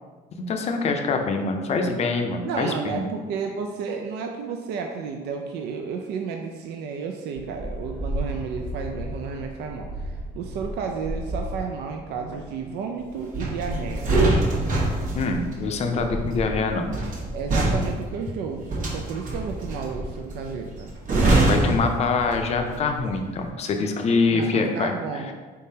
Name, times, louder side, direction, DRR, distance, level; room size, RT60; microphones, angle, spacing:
voice 1, 0.5-3.1 15.1-16.9 21.5-25.2, left 4 dB, 40° left, 4 dB, 0.5 m, -24 dB
voice 2, 2.4-14.1 17.3-20.9 23.8-23.9 24.3-25.3, right 5 dB, 80° right, 3 dB, 0.4 m, -32 dB
sound 1, 7.4-12.8, right 1 dB, 5° right, 0.9 m, -34 dB
sound 2, 13.3-22.7 23.0-23.3, right 2 dB, 50° right, 1.1 m, -24 dB
4.1 x 3.6 x 2.7 m, 1.4 s
cardioid pair, 110°, 17 cm